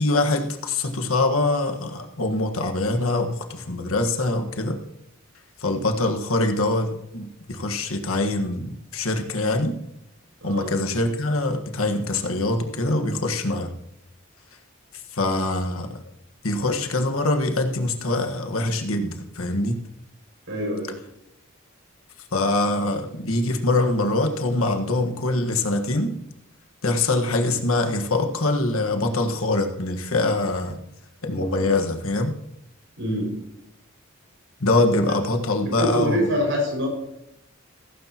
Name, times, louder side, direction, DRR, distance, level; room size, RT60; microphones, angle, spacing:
voice 1, 0.0-4.8 5.6-9.8 10.4-13.7 15.1-15.9 16.4-19.8 22.3-26.1 26.8-30.8 31.2-32.3 34.6-36.3, left 2 dB, 85° left, 5 dB, 1.5 m, -24 dB
voice 2, 10.4-10.7 20.5-21.0 33.0-33.3 35.8-36.9, equal, 65° right, 1 dB, 5.8 m, -25 dB
16.0 x 15.0 x 3.0 m, 0.84 s
head